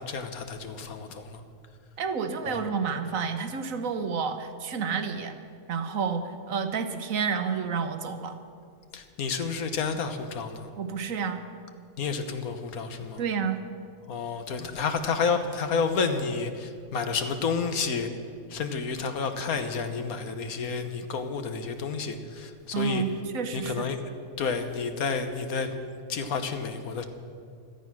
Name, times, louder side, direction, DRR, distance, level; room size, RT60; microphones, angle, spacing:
voice 1, 0.0-1.4 2.4-2.7 8.9-10.7 12.0-13.2 14.1-18.1 18.5-23.0 23.5-24.0 24.4-25.7 26.1-27.0, left 5 dB, 80° left, 8 dB, 1.5 m, -30 dB
voice 2, 2.0-5.4 5.7-8.4 10.7-11.4 13.2-13.6 22.7-23.1 23.3-23.9, right 6 dB, 70° right, 8 dB, 1.3 m, -30 dB
17.0 x 12.5 x 6.1 m, 2.3 s
omnidirectional pair, 1.5 m